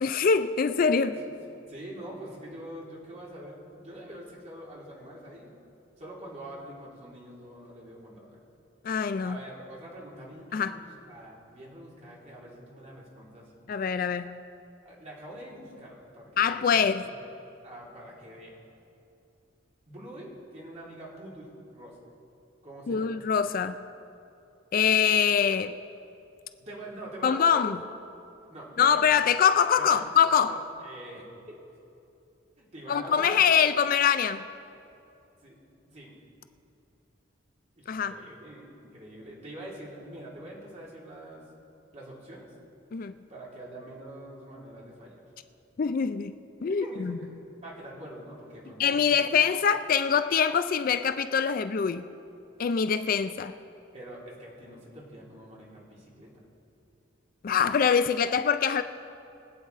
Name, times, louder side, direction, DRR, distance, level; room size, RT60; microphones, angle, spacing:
voice 1, 0.0-1.1 8.8-9.4 10.5-10.8 13.7-14.4 16.4-17.1 22.9-23.8 24.7-25.8 27.2-27.8 28.8-30.5 32.9-34.4 37.9-38.1 42.9-43.1 45.8-46.3 46.6-47.2 48.8-52.1 52.6-53.5 57.4-58.8, left 7 dB, 45° left, 11 dB, 0.4 m, -24 dB
voice 2, 1.7-5.5 6.0-8.4 9.2-13.6 14.8-17.2 17.6-18.6 19.9-22.0 22.6-23.1 26.6-27.8 28.5-29.1 29.8-30.1 30.4-31.6 32.6-33.4 35.4-35.6 35.9-36.1 37.8-41.4 41.9-42.5 43.3-45.2 46.7-47.3 47.6-49.3 53.9-56.5, right 1 dB, 35° right, -5 dB, 3.0 m, -44 dB
23.5 x 8.4 x 4.0 m, 2.7 s
head